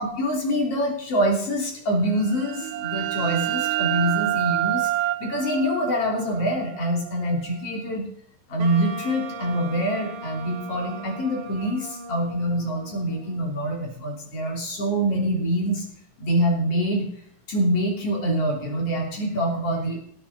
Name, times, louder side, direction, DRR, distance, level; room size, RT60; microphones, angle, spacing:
voice 1, 0.0-4.9 5.2-8.0 8.5-15.8 16.2-17.1 17.5-20.0, equal, 40° left, 0 dB, 4.0 m, -25 dB
sound 1, 2.2-7.6, right 15 dB, 90° right, 2.5 m, -28 dB
Wind instrument woodwind instrument, 8.6-13.6, right 2 dB, 60° right, 2.9 m, -38 dB
19.0 x 8.7 x 4.1 m, 0.66 s
omnidirectional pair, 4.2 m